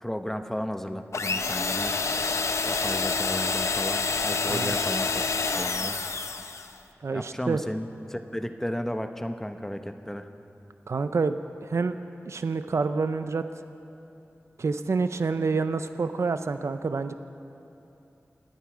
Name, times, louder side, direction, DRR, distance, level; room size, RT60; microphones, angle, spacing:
voice 1, 0.0-1.9 2.6-6.0 7.1-10.3, equal, 10° left, 7 dB, 0.8 m, -34 dB
sound 1, 1.1-6.7, left 4 dB, 80° left, 0.6 m, -28 dB
voice 2, 7.0-7.6 10.9-12.0 12.3-13.4 14.6-17.1, right 4 dB, 70° right, 10 dB, 0.5 m, -27 dB
27.5 x 9.2 x 5.0 m, 2.8 s
wide cardioid pair, 65°, 5 cm